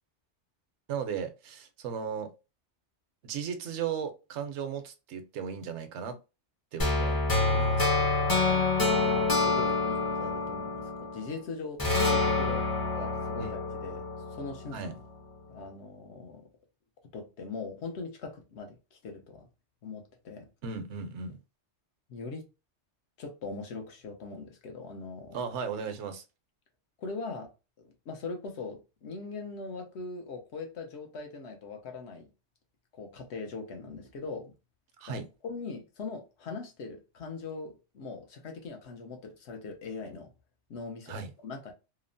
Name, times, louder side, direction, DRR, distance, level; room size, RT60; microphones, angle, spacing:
voice 1, 0.9-2.3 3.2-6.2 6.7-7.2 7.5-7.9 13.4-13.5 14.7-14.9 20.6-21.4 25.3-26.2 35.0-35.3 41.1-41.3, right 6 dB, 75° right, 0.9 m, -36 dB
sound 1, 6.8-11.3 11.8-14.9, left 3 dB, 25° left, 0.5 m, -27 dB
voice 2, 8.3-12.6 12.9-14.1 14.3-14.8 15.5-16.5 17.1-19.5 19.8-20.5 22.1-22.4 23.2-25.4 27.0-27.5 27.8-32.3 32.9-34.5 35.0-35.2 35.4-40.3 40.7-41.2 41.4-41.7, left 4 dB, 70° left, 0.9 m, -41 dB
2.9 x 2.0 x 2.5 m
omnidirectional pair, 1.2 m